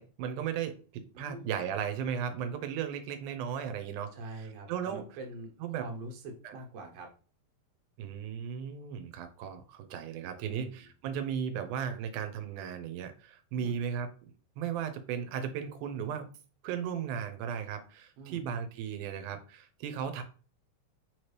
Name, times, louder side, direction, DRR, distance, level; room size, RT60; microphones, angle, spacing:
voice 1, 0.0-5.0 5.6-5.9 6.4-6.6 8.0-14.1 14.6-16.3 16.6-20.2, right 8 dB, 90° right, 7 dB, 2.1 m, -36 dB
voice 2, 1.1-1.5 4.1-7.1 10.4-10.8 13.5-13.8 18.2-18.5, right 2 dB, 65° right, 2 dB, 1.9 m, -44 dB
4.7 x 2.9 x 3.2 m, 0.38 s
omnidirectional pair, 3.5 m